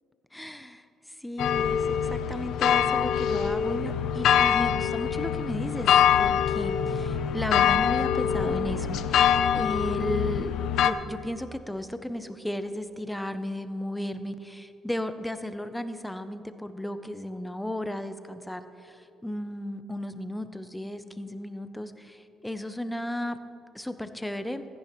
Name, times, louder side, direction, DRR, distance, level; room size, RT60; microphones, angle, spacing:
voice 1, 0.3-5.9 6.2-23.4 23.7-24.7, left 1 dB, 5° left, 10 dB, 0.5 m, -34 dB
sound 1, 1.4-10.9, left 8 dB, 65° left, 0.4 m, -24 dB
15.5 x 14.0 x 3.0 m, 2.9 s
cardioid pair, 175°, 0 cm